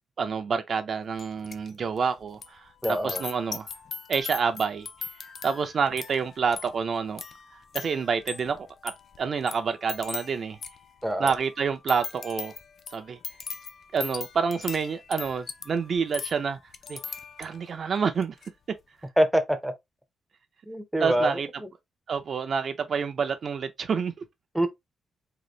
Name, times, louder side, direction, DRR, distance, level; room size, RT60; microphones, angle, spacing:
voice 1, 0.2-2.7 3.0-3.7 4.1-4.9 5.4-7.2 7.7-8.9 9.2-10.6 11.2-12.5 12.9-13.2 13.9-16.6 16.9-17.0 17.4-18.4 21.0-21.5 22.1-24.1, right 6 dB, 45° right, 0.5 m, -28 dB
sound 1, 1.2-1.7 2.0-17.7 18.1-18.5, left 5 dB, 50° left, 0.4 m, -40 dB
voice 2, 2.8-3.2 11.0-11.3 19.2-19.7 20.7-21.7 24.5-24.7, equal, ahead, 0.6 m, -25 dB
3.8 x 2.5 x 3.1 m
wide cardioid pair, 145°, 0 cm